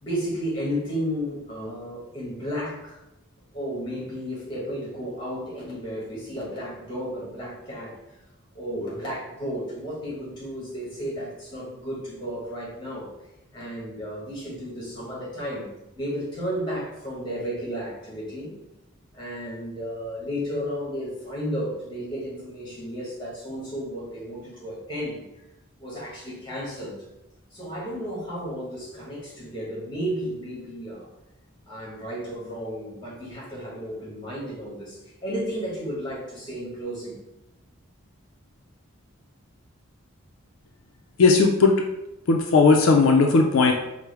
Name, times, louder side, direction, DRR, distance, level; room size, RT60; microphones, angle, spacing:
voice 1, 0.0-3.0 3.5-8.0 8.5-13.1 13.5-18.5 19.1-25.2 25.8-27.0 27.5-31.1 31.7-37.2, equal, 20° left, -5 dB, 1.2 m, -33 dB
voice 2, 41.2-41.7 42.3-43.7, left 4 dB, 70° left, 2 dB, 0.3 m, -17 dB
4.6 x 2.0 x 3.3 m, 0.94 s
head